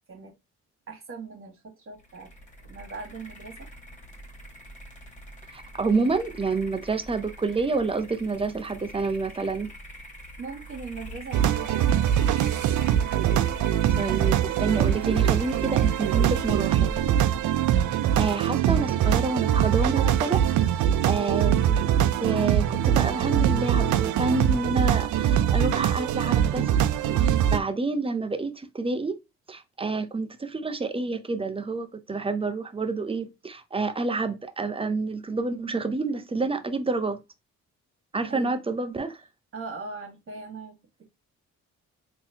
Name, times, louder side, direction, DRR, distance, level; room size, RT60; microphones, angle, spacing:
voice 1, 0.9-2.3 2.6-3.7 10.4-12.1 38.3-38.6 39.5-41.1, right 4 dB, 45° right, 1.8 m, -40 dB
sound 1, 2.0-18.3, right 1 dB, 25° left, 2.1 m, -43 dB
voice 2, 5.5-9.7 13.9-16.9 18.2-20.5 21.0-21.8 22.2-26.7 27.2-29.2 29.5-37.2 38.1-39.2, right 3 dB, 20° right, 0.6 m, -28 dB
sound 2, 11.3-27.6, right 10 dB, 75° right, 0.5 m, -23 dB
3.7 x 3.0 x 2.7 m
cardioid pair, 90°, 30 cm